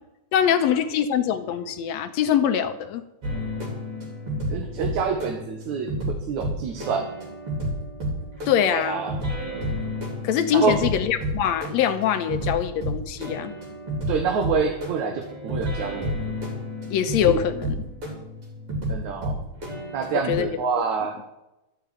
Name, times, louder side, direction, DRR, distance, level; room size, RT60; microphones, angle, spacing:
voice 1, 0.3-3.0 8.5-9.0 10.2-13.5 16.9-17.7 20.1-20.5 20.8-20.9, left 9 dB, 75° left, 9 dB, 1.9 m, -23 dB
sound 1, 3.2-20.4, equal, 45° right, 4.3 m, -31 dB
voice 2, 4.5-7.1 8.7-9.2 10.5-10.8 14.1-16.1 17.3-17.4 18.9-19.5 19.9-21.2, right 5 dB, 75° right, 3 dB, 2.6 m, -27 dB
13.0 x 6.7 x 8.9 m, 0.94 s
omnidirectional pair, 3.4 m